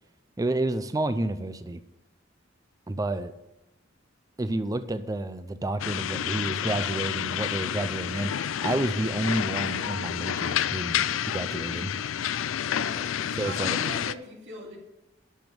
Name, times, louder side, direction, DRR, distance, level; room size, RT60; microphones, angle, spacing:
voice 1, 0.4-1.8 2.9-3.3 4.4-11.9 13.4-13.8, right 2 dB, 20° right, 11 dB, 0.4 m, -30 dB
sound 1, 5.8-14.1, left 9 dB, 85° left, 0.4 m, -29 dB
voice 2, 12.6-14.8, right 1 dB, 65° right, -1 dB, 2.6 m, -41 dB
12.0 x 5.3 x 6.9 m, 0.94 s
head